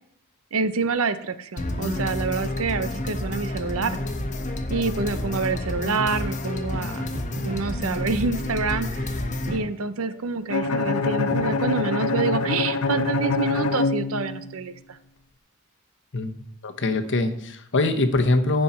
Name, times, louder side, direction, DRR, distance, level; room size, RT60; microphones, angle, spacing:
voice 1, 0.5-4.0 4.7-7.1 7.4-9.1 9.5-15.0, right 4 dB, 70° right, 12 dB, 0.7 m, -27 dB
sound 1, 1.6-9.6, left 1 dB, 35° left, 1.1 m, -29 dB
sound 2, 6.6-13.2, equal, 45° right, 2.5 m, -40 dB
Bowed string instrument, 10.5-14.6, left 3 dB, 80° left, 0.7 m, -25 dB
voice 2, 16.6-18.6, left 2 dB, 60° left, 7 dB, 1.0 m, -23 dB
15.0 x 5.6 x 4.3 m, 0.71 s
head